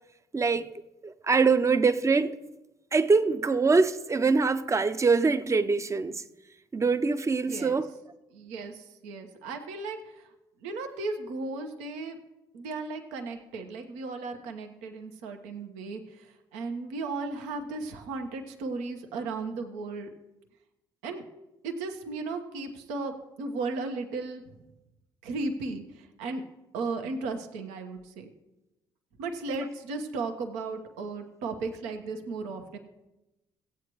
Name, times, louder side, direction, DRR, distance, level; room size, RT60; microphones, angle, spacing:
voice 1, 0.3-0.7 1.0-2.3 2.9-6.2 6.7-7.9, right 4 dB, 25° right, 0.7 m, -24 dB
voice 2, 7.5-7.8 8.3-10.3 10.6-12.2 12.5-20.1 21.0-21.2 21.6-24.5 25.2-26.4 26.7-28.3 29.2-32.8, right 3 dB, 75° right, 1.1 m, -35 dB
16.5 x 8.5 x 3.1 m
hypercardioid pair, 50°, 12 cm